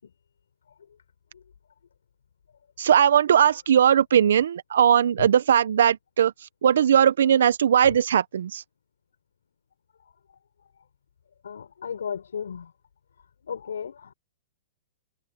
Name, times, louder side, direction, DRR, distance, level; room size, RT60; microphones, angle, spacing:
voice 1, 2.8-6.3 6.6-8.6, right 9 dB, 70° right, 1.2 m, -19 dB
voice 2, 11.4-12.7 13.5-14.1, left 7 dB, 80° left, 5.5 m, -35 dB
hypercardioid pair, 120°, 0 cm